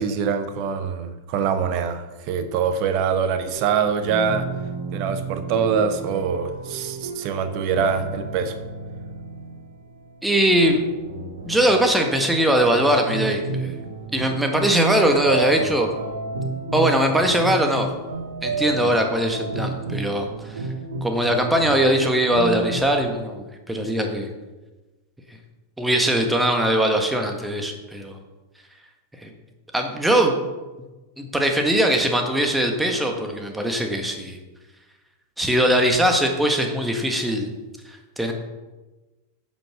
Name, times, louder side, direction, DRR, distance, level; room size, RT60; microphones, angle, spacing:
voice 1, 0.0-4.5 4.9-8.6, right 6 dB, 45° right, 9 dB, 1.2 m, -24 dB
sound 1, 3.4-11.9 12.7-23.1, right 3 dB, 65° right, 2.0 m, -31 dB
voice 2, 10.2-10.8 11.5-13.8 14.1-15.9 16.7-17.9 18.4-20.6 21.0-24.3 25.8-28.2 29.2-29.3 29.7-30.4 31.2-34.4 35.4-37.5 37.9-38.3, right 1 dB, 5° right, 4 dB, 1.6 m, -21 dB
9.4 x 7.3 x 6.1 m, 1.2 s
figure-of-eight pair, 90°, 0 cm